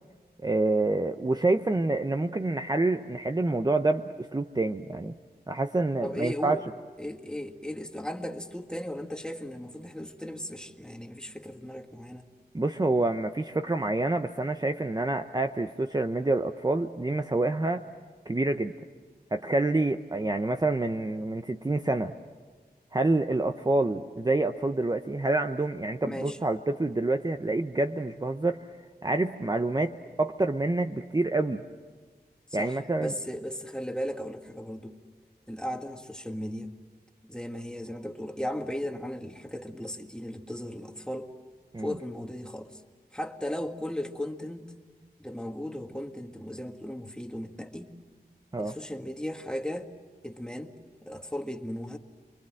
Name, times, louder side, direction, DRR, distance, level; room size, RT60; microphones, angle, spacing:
voice 1, 0.4-5.2 5.5-6.6 12.5-17.8 18.3-18.7 19.3-22.1 22.9-28.7 29.0-31.6 32.5-33.1 41.7-41.9 48.5-48.8, right 2 dB, 25° right, 7 dB, 0.8 m, -27 dB
voice 2, 6.0-6.6 7.0-12.3 26.0-26.4 32.5-35.0 35.5-36.7 37.2-41.3 41.8-42.8 43.1-44.7 45.2-47.9 48.6-49.9 50.2-52.0, equal, 5° left, 5 dB, 1.7 m, -36 dB
29.0 x 22.5 x 7.7 m, 1.5 s
wide cardioid pair, 60°, 17 cm